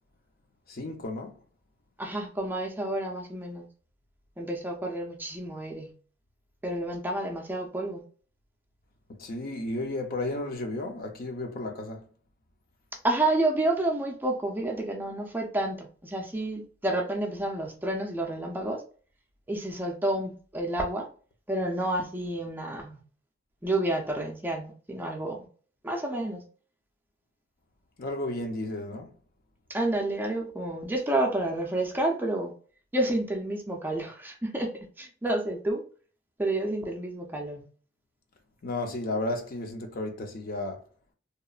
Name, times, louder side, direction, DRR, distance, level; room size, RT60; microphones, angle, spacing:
voice 1, 0.7-1.4 9.2-12.1 28.0-29.2 38.6-40.8, left 2 dB, 50° left, 0.6 m, -33 dB
voice 2, 2.0-3.7 4.4-5.9 6.6-8.0 13.0-18.8 19.5-21.1 21.5-23.0 23.6-25.5 25.8-26.4 29.7-32.5 32.9-34.7 35.0-35.8 36.4-37.6, right 1 dB, 10° right, 0.4 m, -29 dB
2.9 x 2.0 x 2.3 m
head